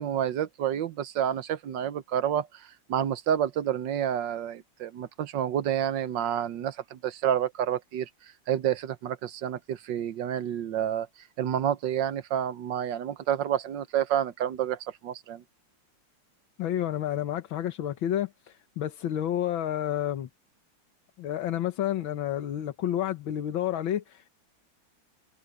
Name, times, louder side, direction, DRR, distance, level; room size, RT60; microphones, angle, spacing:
voice 1, 0.0-11.1 11.4-15.4, right 10 dB, 70° right, 1.5 m, -29 dB
voice 2, 16.6-20.3 21.2-24.3, left 11 dB, 80° left, 1.9 m, -30 dB
omnidirectional pair, 2.2 m